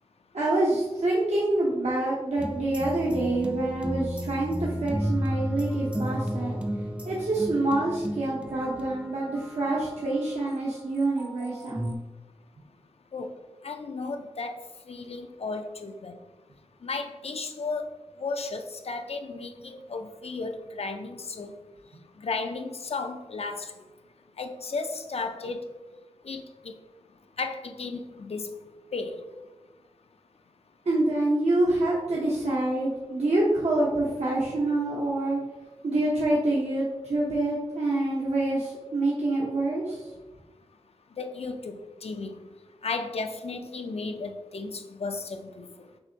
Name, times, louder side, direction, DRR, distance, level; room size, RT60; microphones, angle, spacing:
voice 1, 0.3-6.6 7.0-11.9 30.9-35.4 35.8-40.0, right 2 dB, 75° right, -6 dB, 0.8 m, -26 dB
sound 1, 2.4-10.1 10.8-12.0, equal, 10° right, 0.4 m, -33 dB
voice 2, 13.6-14.6 14.9-16.2 16.8-17.9 18.2-21.5 22.2-23.7 24.4-25.7 26.2-26.4 27.4-28.5 28.9-29.3 41.2-42.3 42.8-45.7, left 3 dB, 60° left, 6 dB, 0.4 m, -34 dB
6.2 x 2.5 x 2.8 m, 1.1 s
wide cardioid pair, 70°, 12 cm